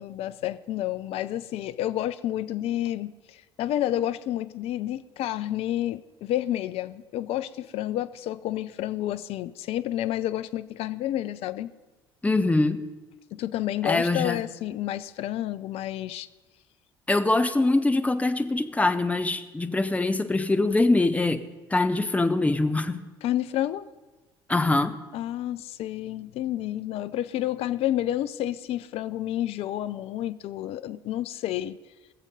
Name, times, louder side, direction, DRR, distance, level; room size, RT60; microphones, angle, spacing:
voice 1, 0.0-11.7 13.3-16.3 23.2-23.8 25.1-31.8, left 13 dB, 55° left, 13 dB, 0.5 m, -30 dB
voice 2, 12.2-12.8 13.8-14.5 17.1-23.1 24.5-25.0, left 2 dB, 10° left, 10 dB, 0.8 m, -23 dB
20.0 x 7.3 x 5.4 m, 1.2 s
figure-of-eight pair, 55°, 12 cm